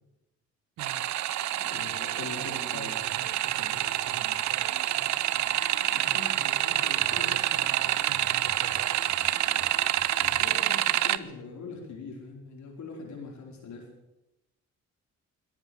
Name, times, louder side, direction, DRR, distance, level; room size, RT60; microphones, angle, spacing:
sound 1, 0.8-11.2, right 13 dB, 70° right, 0.7 m, -27 dB
voice 1, 0.8-1.1 2.2-4.7 7.0-9.0 10.5-10.8, right 10 dB, 90° right, 11 dB, 1.4 m, -45 dB
voice 2, 1.6-3.0 5.9-7.6 10.2-13.9, left 4 dB, 70° left, 2 dB, 4.7 m, -42 dB
sound 2, 2.5-10.4, right 3 dB, 40° right, 3.0 m, -50 dB
21.0 x 9.0 x 7.2 m, 0.96 s
cardioid pair, 90°, 30 cm